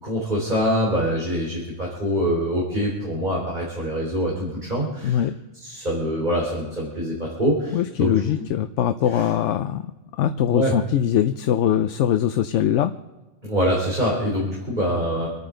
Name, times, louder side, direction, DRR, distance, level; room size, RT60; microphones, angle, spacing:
voice 1, 0.0-5.2 5.6-8.2 9.1-9.3 10.5-10.7 13.4-15.3, equal, 40° right, -4 dB, 3.9 m, -24 dB
voice 2, 5.0-5.3 7.7-9.9 10.2-12.9, left 10 dB, 75° left, 10 dB, 0.9 m, -22 dB
28.0 x 9.5 x 3.8 m, 1.2 s
omnidirectional pair, 1.3 m